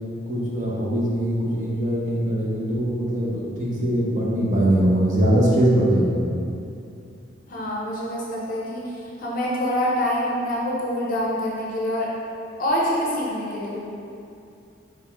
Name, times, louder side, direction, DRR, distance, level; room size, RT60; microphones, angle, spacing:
voice 1, 0.3-6.2, right 1 dB, 40° right, -6 dB, 0.8 m, -21 dB
voice 2, 7.5-8.9 9.2-12.1 12.6-13.8, equal, 45° left, -4 dB, 0.6 m, -25 dB
4.8 x 3.5 x 3.0 m, 2.6 s
head